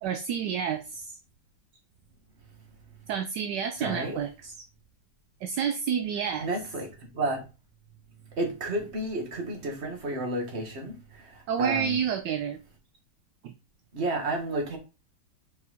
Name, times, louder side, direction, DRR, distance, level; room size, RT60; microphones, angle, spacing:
voice 1, 0.0-1.2 3.1-4.5 5.4-6.5 11.5-12.6 13.4-13.5, right 8 dB, 75° right, 1.1 m, -29 dB
voice 2, 3.8-4.2 6.4-7.4 8.4-12.0 13.9-14.8, right 1 dB, 35° right, 1.8 m, -31 dB
5.4 x 4.9 x 4.0 m
omnidirectional pair, 2.1 m